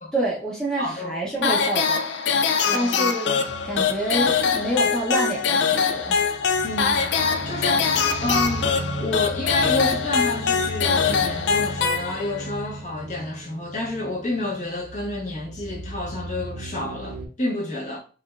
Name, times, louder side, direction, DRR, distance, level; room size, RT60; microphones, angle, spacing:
voice 1, 0.1-2.1 2.7-6.2, right 1 dB, 5° left, 0.7 m, -27 dB
voice 2, 0.8-1.2 2.6-3.1 6.6-7.1 7.4-18.0, left 1 dB, 45° left, 1.0 m, -29 dB
sound 1, 1.4-12.5, left 6 dB, 70° left, 0.3 m, -23 dB
sound 2, 3.5-17.3, right 1 dB, 60° right, 0.6 m, -36 dB
4.8 x 2.3 x 2.3 m
head